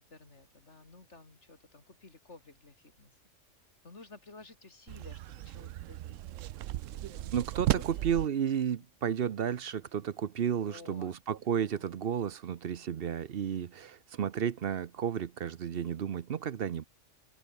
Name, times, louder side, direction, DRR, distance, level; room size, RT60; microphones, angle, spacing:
voice 1, 0.0-3.1 3.8-6.2 6.9-7.4 7.7-8.1 10.5-11.2 11.5-11.9, left 3 dB, 65° left, 3.4 m, -54 dB
sound 1, 4.9-8.3, right 14 dB, 85° right, 0.9 m, -35 dB
voice 2, 7.3-16.8, right 8 dB, 55° right, 0.9 m, -32 dB
omnidirectional pair, 1.3 m